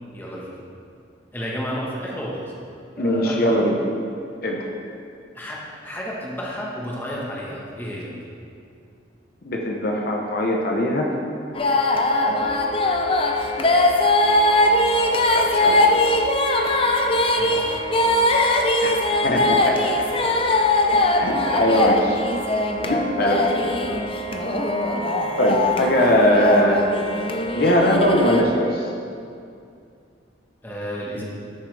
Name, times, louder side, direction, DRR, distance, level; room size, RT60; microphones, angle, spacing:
voice 1, 0.1-0.5 1.3-2.4 3.0-3.6 5.3-8.2 12.2-12.4 17.4-17.7 21.4-21.7 23.4-23.6 23.8-24.0 30.6-31.2, equal, 10° left, -4 dB, 1.3 m, -32 dB
voice 2, 3.0-3.8 4.4-4.7 9.4-11.1 15.3-15.9 18.8-19.0 19.2-20.1 20.9-22.2 22.8-23.5 25.4-26.9 27.5-28.9, equal, 55° left, 0 dB, 0.9 m, -21 dB
sound 1, 11.5-28.4, left 1 dB, 30° left, 0.6 m, -21 dB
13.0 x 6.9 x 3.4 m, 2.4 s
head